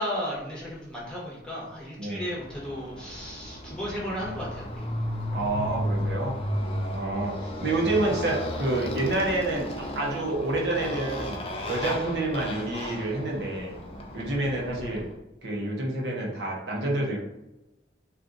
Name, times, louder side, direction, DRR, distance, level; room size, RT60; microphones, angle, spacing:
voice 1, 0.0-4.9, equal, 5° left, -6 dB, 0.9 m, -34 dB
Motorcycle, 2.4-15.1, equal, 30° left, 0.4 m, -34 dB
voice 2, 5.3-6.4 6.9-13.7 14.1-15.1 15.4-17.2, right 2 dB, 65° right, -2 dB, 0.7 m, -28 dB
2.6 x 2.4 x 3.6 m, 0.96 s
head